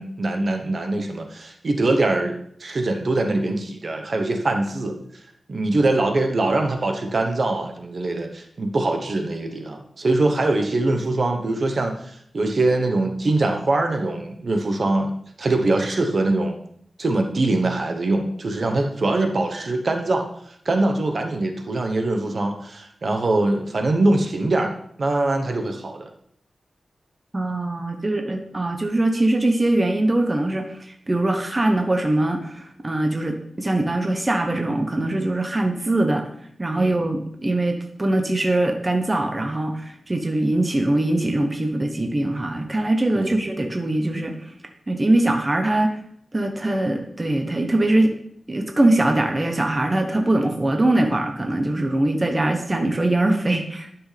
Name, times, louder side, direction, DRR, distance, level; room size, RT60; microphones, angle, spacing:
voice 1, 0.0-5.0 5.5-15.1 15.4-16.6 17.0-20.3 20.6-26.1 36.8-37.1 43.1-43.4, right 2 dB, 50° right, 4 dB, 1.0 m, -23 dB
voice 2, 27.3-36.3 36.6-44.4 44.9-46.0 46.3-48.1 48.5-53.9, right 1 dB, 25° right, 4 dB, 0.8 m, -22 dB
11.5 x 6.1 x 3.3 m, 0.68 s
wide cardioid pair, 130°, 0 cm